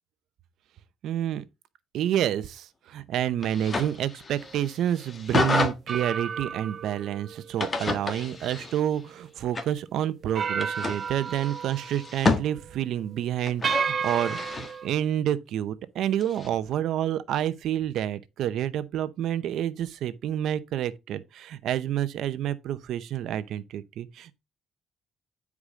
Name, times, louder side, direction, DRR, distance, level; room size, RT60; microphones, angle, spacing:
voice 1, 1.0-1.4 1.9-24.4, right 11 dB, 80° right, 0.8 m, -29 dB
sound 1, 3.4-5.7 7.6-9.0 9.5-9.8 10.6-12.4 13.5-14.7 16.2-16.5, left 3 dB, 35° left, 1.5 m, -30 dB
sound 2, 4.3-4.6 5.9-9.3 9.7-9.8 10.3-12.2 12.5-12.8 13.6-14.9, right 6 dB, 50° right, 0.5 m, -33 dB
10.0 x 4.8 x 3.7 m
cardioid pair, 90°, 0 cm